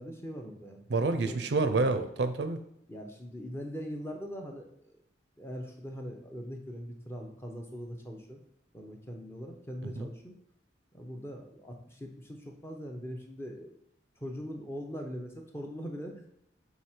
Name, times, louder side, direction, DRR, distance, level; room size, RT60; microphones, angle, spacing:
voice 1, 0.0-1.5 2.9-4.9 5.4-8.4 8.7-10.3 10.9-13.8 14.2-16.3, equal, 15° left, 2 dB, 0.7 m, -41 dB
voice 2, 0.9-2.6 10.0-10.1, right 3 dB, 65° right, 10 dB, 0.5 m, -28 dB
4.8 x 4.7 x 4.4 m, 0.73 s
head